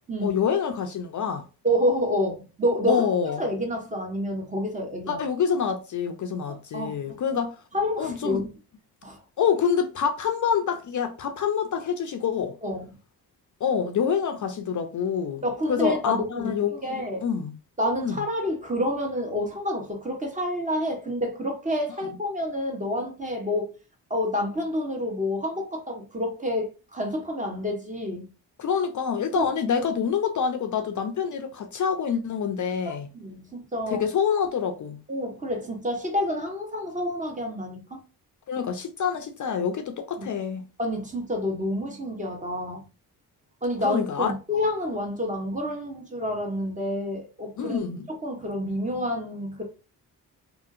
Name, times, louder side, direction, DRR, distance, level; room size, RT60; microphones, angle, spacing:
voice 1, 0.2-1.5 2.9-3.4 5.1-7.6 8.0-8.4 9.4-12.6 13.6-17.5 18.0-18.2 28.6-33.1 33.9-35.0 38.5-40.6 43.8-44.3 47.6-48.1, left 7 dB, 50° left, 0.5 m, -26 dB
voice 2, 1.6-5.2 6.5-7.2 7.7-8.5 9.0-9.2 12.6-12.8 15.4-17.2 17.8-23.7 24.1-28.3 29.3-29.5 29.7-29.8 32.8-34.0 35.1-38.0 40.2-40.3 40.8-42.8 43.6-47.8 48.1-49.6, left 1 dB, 20° right, 1.1 m, -28 dB
2.7 x 2.7 x 2.5 m
cardioid pair, 80°, 39 cm